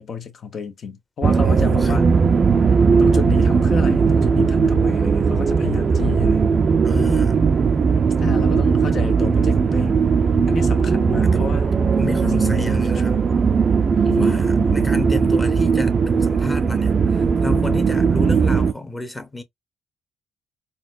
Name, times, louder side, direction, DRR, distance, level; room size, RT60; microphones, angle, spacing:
voice 1, 0.0-2.1 2.7-6.5 8.2-10.0 10.5-11.7 12.2-13.2 14.0-14.9, left 7 dB, 55° left, 0.9 m, -31 dB
sound 1, 1.2-18.7, right 5 dB, 45° right, 0.5 m, -18 dB
voice 2, 1.4-2.0 6.8-7.4 8.6-8.7 11.2-11.5 12.0-13.2 14.2-19.4, left 3 dB, 15° left, 1.0 m, -30 dB
sound 2, 8.1-15.1, left 6 dB, 90° left, 1.0 m, -42 dB
4.0 x 2.3 x 2.5 m
cardioid pair, 90°, 0 cm